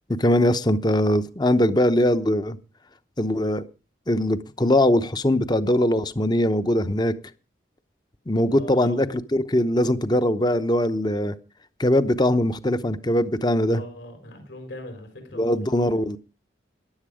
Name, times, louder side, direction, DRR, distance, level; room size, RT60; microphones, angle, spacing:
voice 1, 0.1-2.6 3.2-3.6 4.1-7.1 8.3-11.3 11.8-13.8 15.4-16.2, left 1 dB, 20° left, 0.8 m, -21 dB
voice 2, 8.5-9.0 13.7-15.9, left 1 dB, 75° left, 4.2 m, -41 dB
14.5 x 11.0 x 4.9 m
head